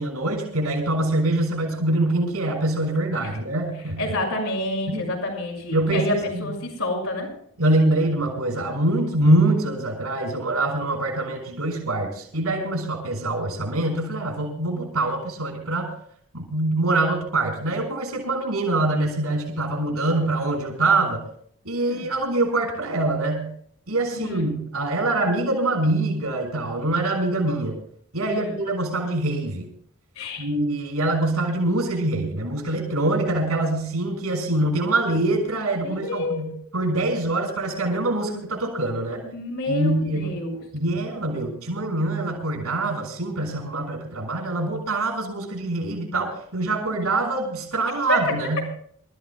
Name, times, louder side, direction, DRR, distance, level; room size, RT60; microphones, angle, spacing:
voice 1, 0.0-4.1 4.9-5.1 5.7-6.5 7.6-15.9 16.3-21.2 21.6-23.5 23.9-27.7 28.1-29.7 30.4-39.2 39.7-40.3 40.7-48.6, right 2 dB, 85° right, 3 dB, 6.4 m, -24 dB
voice 2, 4.0-7.3 21.8-22.0 24.2-24.4 28.2-28.5 30.2-30.5 35.8-37.0 39.3-40.6 48.1-48.2, left 1 dB, 80° left, -1 dB, 6.4 m, -29 dB
28.0 x 14.5 x 2.4 m, 0.62 s
head